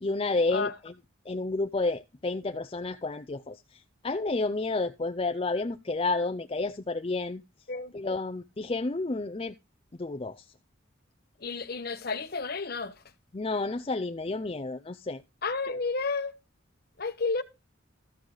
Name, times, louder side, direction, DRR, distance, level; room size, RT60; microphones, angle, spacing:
voice 1, 0.0-0.9 1.3-3.8 4.0-7.4 7.9-9.5 10.0-10.4 13.3-15.2, left 3 dB, 25° left, 0.5 m, -30 dB
voice 2, 11.4-12.9 15.4-16.3 17.0-17.4, left 4 dB, 50° left, 1.0 m, -31 dB
13.5 x 6.4 x 3.9 m
head